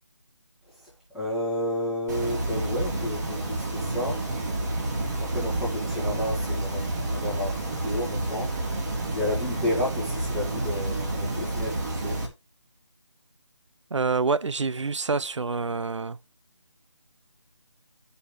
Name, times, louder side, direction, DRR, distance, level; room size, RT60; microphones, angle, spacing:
voice 1, 1.1-4.2 5.2-8.6 9.1-12.2, left 1 dB, ahead, 1.8 m, -31 dB
sound 1, 2.1-12.3, right 2 dB, 35° right, 2.4 m, -29 dB
voice 2, 13.9-16.2, right 4 dB, 80° right, 0.5 m, -27 dB
12.5 x 5.5 x 3.1 m
figure-of-eight pair, 165°, 15 cm